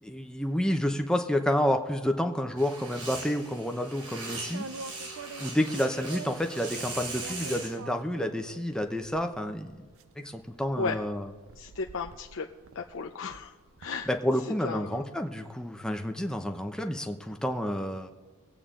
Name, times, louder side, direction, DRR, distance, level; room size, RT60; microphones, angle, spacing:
voice 1, 0.0-4.7 5.4-9.9 10.2-11.3 14.1-18.1, left 1 dB, 5° left, 5 dB, 0.8 m, -29 dB
sound 1, 2.6-7.8, right 3 dB, 80° right, 3.2 m, -40 dB
sound 2, 4.5-6.5 7.2-14.2, right 4 dB, 60° right, 0.5 m, -46 dB
voice 2, 11.5-12.5 12.7-15.1, left 4 dB, 60° left, 1 dB, 0.7 m, -35 dB
22.5 x 8.6 x 3.8 m, 1.4 s
head